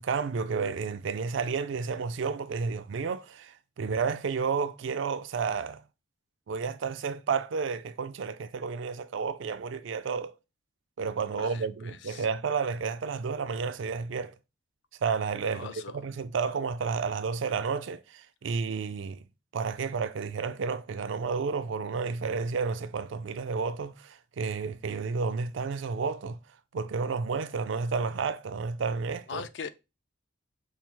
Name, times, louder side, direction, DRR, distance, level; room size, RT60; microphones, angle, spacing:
voice 1, 0.0-5.8 6.5-10.3 11.0-14.3 15.0-19.2 19.5-26.4 26.7-29.4, right 5 dB, 65° right, 0.4 m, -31 dB
voice 2, 11.4-12.3 15.5-16.0 29.3-29.7, left 6 dB, 55° left, 0.3 m, -40 dB
5.4 x 2.0 x 4.5 m
head